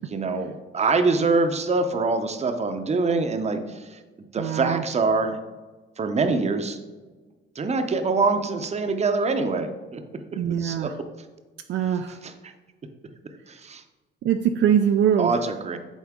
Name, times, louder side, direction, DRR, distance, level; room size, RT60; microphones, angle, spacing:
voice 1, 0.1-4.0 4.3-5.4 6.0-6.8 7.5-10.9 12.2-12.5 13.5-13.8 15.2-15.8, right 3 dB, 35° right, 7 dB, 0.7 m, -25 dB
voice 2, 4.4-4.8 10.4-10.9 11.7-12.2 14.2-15.3, right 9 dB, 65° right, 6 dB, 0.4 m, -22 dB
8.1 x 3.8 x 3.6 m, 1.3 s
cardioid pair, 90°, 20 cm